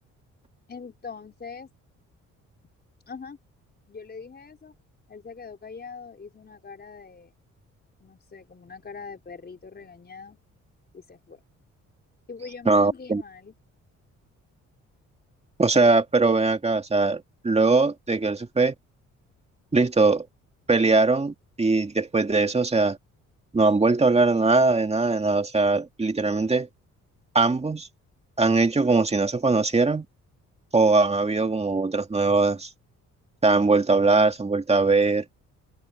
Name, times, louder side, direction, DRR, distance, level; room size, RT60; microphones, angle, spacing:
voice 1, 0.7-1.7 3.1-3.4 3.9-4.7 5.1-7.3 8.0-10.4 10.9-11.4 12.3-13.5, left 5 dB, 35° left, 4.6 m, -42 dB
voice 2, 12.7-13.2 15.6-18.7 19.7-20.3 20.7-23.0 23.5-26.7 27.3-27.9 28.4-30.1 30.7-32.7 33.4-35.2, right 3 dB, 20° right, 2.3 m, -21 dB
open air
cardioid pair, 90°, 30 cm